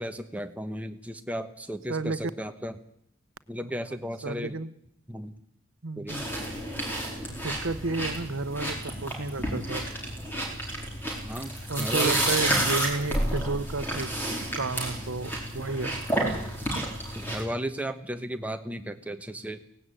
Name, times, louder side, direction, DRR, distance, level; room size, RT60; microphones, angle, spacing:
voice 1, 0.0-2.8 3.5-4.6 5.1-5.4 6.0-6.2 11.2-12.2 17.1-19.6, equal, 5° right, 8 dB, 1.0 m, -35 dB
voice 2, 4.2-4.7 5.8-6.2 7.3-9.8 11.7-14.1 14.5-15.9, right 3 dB, 70° right, 14 dB, 0.9 m, -31 dB
sound 1, 6.1-17.4, right 1 dB, 10° left, 4.6 m, -30 dB
18.0 x 16.5 x 9.0 m, 0.73 s
head